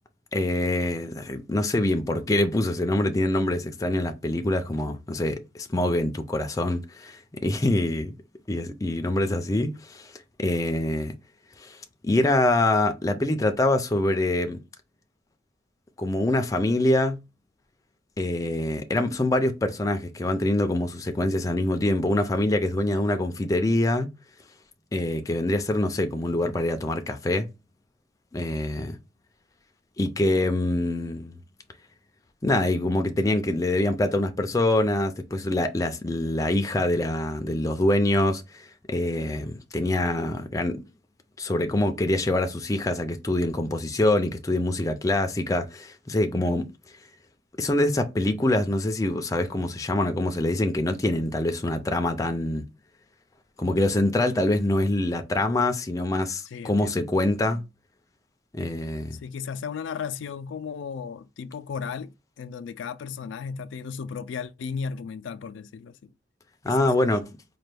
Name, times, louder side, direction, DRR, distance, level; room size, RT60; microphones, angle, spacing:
voice 1, 0.3-8.1 8.5-10.1 10.4-11.1 11.6-11.8 12.0-14.6 16.0-17.2 18.2-24.1 24.9-27.5 28.3-29.0 30.0-31.4 32.4-40.8 41.4-46.7 47.6-52.6 53.6-57.6 58.5-59.2 66.6-67.2, left 1 dB, 20° left, 0.4 m, -25 dB
voice 2, 56.5-57.1 59.1-66.1 66.6-67.1, left 6 dB, 85° left, 0.3 m, -35 dB
4.3 x 2.2 x 3.3 m
head